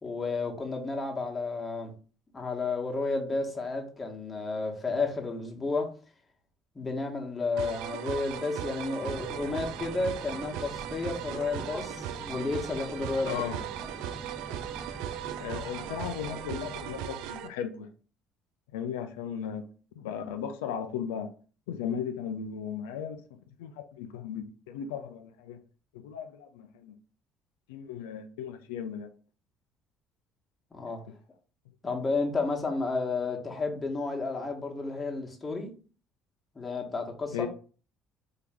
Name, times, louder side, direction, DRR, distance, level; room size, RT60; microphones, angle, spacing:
voice 1, 0.0-1.9 2.3-5.9 6.7-13.4 30.7-31.0 31.8-35.7 36.5-37.5, left 3 dB, 25° left, 1.3 m, -32 dB
sound 1, 7.6-17.5, right 10 dB, 60° right, 0.3 m, -38 dB
sound 2, 9.0-17.0, right 1 dB, 5° right, 0.8 m, -45 dB
voice 2, 13.3-13.6 15.4-17.9 18.7-19.7 20.0-21.3 21.7-23.2 23.6-25.6 25.9-26.9 27.7-29.1 37.3-37.5, left 8 dB, 70° left, 0.4 m, -36 dB
4.4 x 2.8 x 3.5 m
figure-of-eight pair, 55°, 0 cm